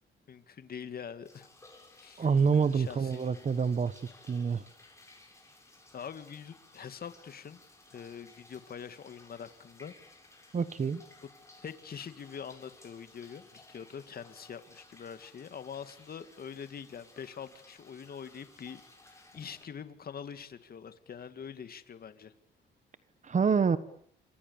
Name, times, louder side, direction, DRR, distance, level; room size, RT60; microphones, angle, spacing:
voice 1, 0.3-1.5 1.9-2.3 2.7-3.2 5.9-7.6 7.9-9.9 11.2-11.3 11.6-22.3, left 7 dB, 50° left, 11 dB, 2.2 m, -44 dB
sound 1, 1.2-19.6, left 2 dB, 15° left, 7.7 m, -58 dB
voice 2, 2.2-4.0 4.3-4.6 10.5-11.0 23.2-23.8, right 6 dB, 35° right, 14 dB, 1.3 m, -27 dB
28.5 x 25.0 x 7.2 m, 0.64 s
cardioid pair, 90°, 20 cm